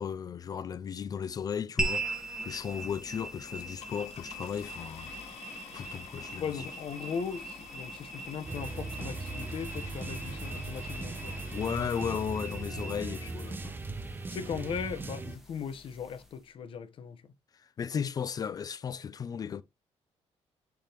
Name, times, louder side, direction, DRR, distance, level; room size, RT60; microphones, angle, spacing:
voice 1, 0.0-5.1 5.7-6.7 11.5-13.8 17.5-19.6, left 7 dB, 35° left, 0.5 m, -35 dB
sound 1, 1.8-16.4, right 1 dB, 5° right, 1.5 m, -41 dB
sound 2, 3.5-13.5 14.3-14.4 14.9-15.0 15.2-15.5, left 8 dB, 70° left, 2.1 m, -52 dB
voice 2, 6.4-11.4 14.3-17.2, left 6 dB, 55° left, 1.2 m, -38 dB
sound 3, 8.5-15.4, right 3 dB, 20° right, 0.6 m, -39 dB
10.5 x 3.8 x 3.0 m
cardioid pair, 155°, 11 cm